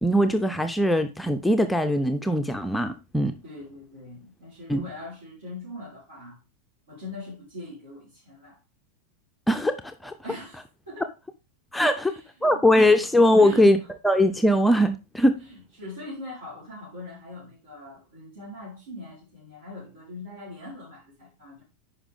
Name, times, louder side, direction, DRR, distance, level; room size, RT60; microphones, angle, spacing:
voice 1, 0.0-3.4 4.7-4.8 9.5-10.1 11.7-12.1 12.4-13.8 14.0-15.4, left 1 dB, 5° left, 0.6 m, -21 dB
voice 2, 3.4-6.4 6.9-8.6 10.2-11.1 12.0-13.1 13.4-13.7 15.4-21.6, left 2 dB, 65° right, 4.5 m, -41 dB
9.9 x 5.3 x 3.6 m
figure-of-eight pair, 90°, 0 cm